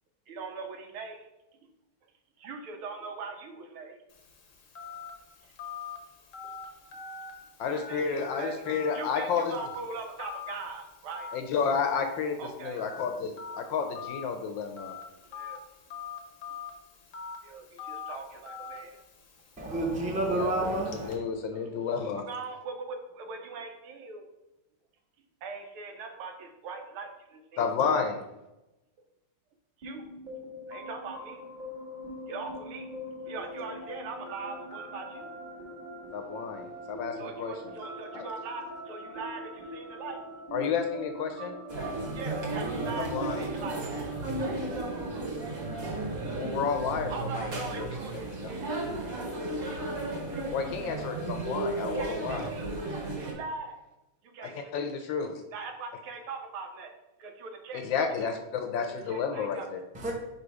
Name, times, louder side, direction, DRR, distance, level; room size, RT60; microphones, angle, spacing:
voice 1, 0.3-1.3 2.4-4.0 7.7-8.6 8.9-11.3 12.4-12.8 15.2-15.6 17.4-19.0 21.4-21.7 22.3-24.2 25.4-27.7 29.8-30.1 30.7-31.4 32.3-32.9 33.2-35.3 37.2-40.2 42.1-43.8 47.1-48.1 48.5-48.6 50.3-50.5 51.9-52.8 53.2-53.8 54.3-54.7 55.5-56.9 57.2-58.4 59.1-59.7, right 4 dB, 80° right, 1.7 m, -41 dB
Telephone, 4.1-21.1, left 6 dB, 55° left, 0.9 m, -45 dB
voice 2, 7.6-9.5 11.3-14.9 20.3-20.5 21.0-22.2 27.6-28.2 36.1-37.5 38.1-38.3 40.5-41.5 43.0-43.5 46.3-47.9 48.4-48.5 50.5-52.4 54.4-55.4 57.7-59.8, left 6 dB, 75° left, 1.2 m, -31 dB
voice 3, 19.6-21.2 59.9-60.1, right 2 dB, 10° right, 0.4 m, -29 dB
sound 1, 29.8-49.3, right 1 dB, 25° right, 1.2 m, -43 dB
sound 2, 41.7-53.3, right 2 dB, 45° right, 1.6 m, -34 dB
5.2 x 3.9 x 4.8 m
omnidirectional pair, 2.3 m